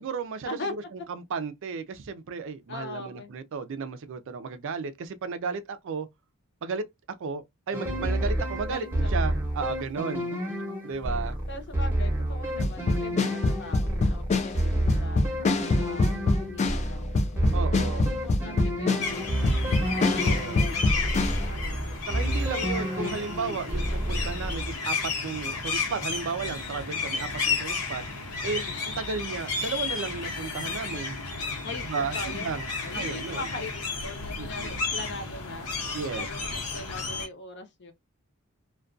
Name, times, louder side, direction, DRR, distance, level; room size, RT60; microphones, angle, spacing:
voice 1, 0.0-0.6 0.9-6.1 6.6-10.3 10.8-11.4 17.5-18.0 20.2-20.7 22.0-28.0 28.4-31.2 31.9-33.4 34.4-34.7 35.9-36.3, right 5 dB, 55° right, 0.4 m, -34 dB
voice 2, 2.7-3.3 8.7-9.1 10.2-10.3 11.5-15.2 15.8-21.9 28.5-28.8 31.6-32.6 32.8-35.7 36.1-37.9, left 3 dB, 50° left, 0.7 m, -41 dB
sound 1, 7.7-24.8, right 1 dB, 10° right, 0.8 m, -30 dB
sound 2, 12.6-21.5, left 3 dB, 30° left, 0.3 m, -25 dB
sound 3, 19.0-37.3, left 4 dB, 85° left, 0.9 m, -33 dB
2.3 x 2.2 x 2.4 m
head